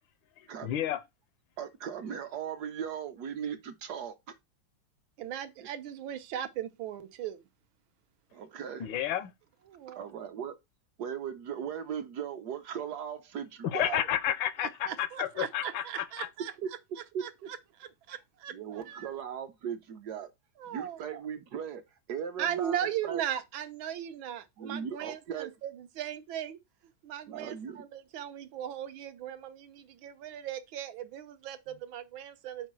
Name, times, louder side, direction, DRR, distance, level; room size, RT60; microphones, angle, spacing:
voice 1, 0.6-1.0 8.8-9.3 13.6-16.3, left 11 dB, 90° left, 1.5 m, -31 dB
voice 2, 1.6-4.3 8.3-8.9 9.9-10.5 11.0-14.0 17.1-17.5 18.5-20.3 20.7-21.8 22.1-23.2 24.6-25.5 27.3-27.9, right 8 dB, 65° right, 1.1 m, -38 dB
voice 3, 5.2-7.4 9.7-10.0 14.8-16.5 17.0-19.1 20.6-21.2 22.4-26.6 27.0-32.7, right 10 dB, 90° right, 1.6 m, -38 dB
5.2 x 4.6 x 6.0 m
omnidirectional pair, 2.1 m